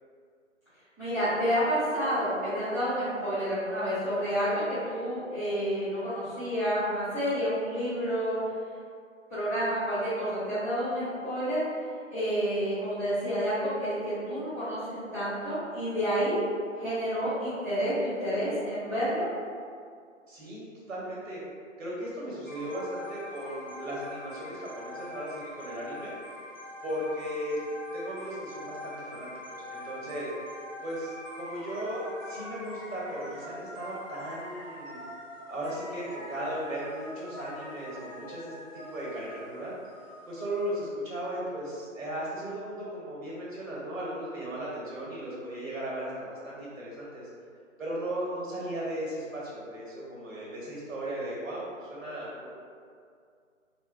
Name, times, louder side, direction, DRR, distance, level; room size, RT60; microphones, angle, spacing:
voice 1, 1.0-8.4 9.3-11.6 12.1-16.4 16.7-19.3, equal, 10° left, -16 dB, 0.6 m, -29 dB
voice 2, 20.3-21.4 21.8-26.1 26.8-27.6 27.9-29.3 29.7-30.3 30.8-35.0 35.5-39.7 40.3-47.3 47.8-52.5, right 1 dB, 75° right, -5 dB, 1.1 m, -36 dB
sound 1, 22.5-40.8, left 1 dB, 35° right, 0.7 m, -44 dB
2.8 x 2.2 x 2.5 m, 2.2 s
figure-of-eight pair, 145°, 40 cm